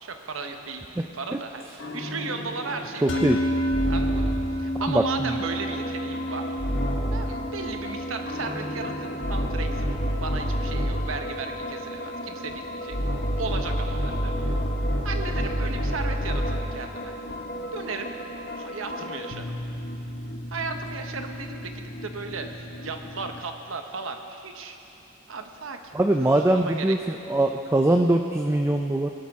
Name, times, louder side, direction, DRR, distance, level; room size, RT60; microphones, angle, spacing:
voice 1, 0.0-3.4 3.9-6.4 7.1-13.0 13.4-14.3 15.0-17.1 17.7-18.1 18.6-19.5 20.5-24.8 25.3-25.8 26.2-27.2, right 4 dB, 85° right, 5 dB, 1.0 m, -35 dB
sound 1, 1.8-4.5 6.6-7.4 8.3-11.2 12.9-16.8, equal, 80° left, 1.8 m, -28 dB
voice 2, 3.0-3.4 4.9-5.4 25.9-29.1, right 1 dB, 10° right, 3 dB, 0.4 m, -22 dB
sound 2, 3.1-13.5, equal, 65° left, 1.3 m, -32 dB
sound 3, 5.4-23.4, left 1 dB, 50° left, 0.8 m, -37 dB
19.5 x 11.5 x 3.6 m, 2.9 s
head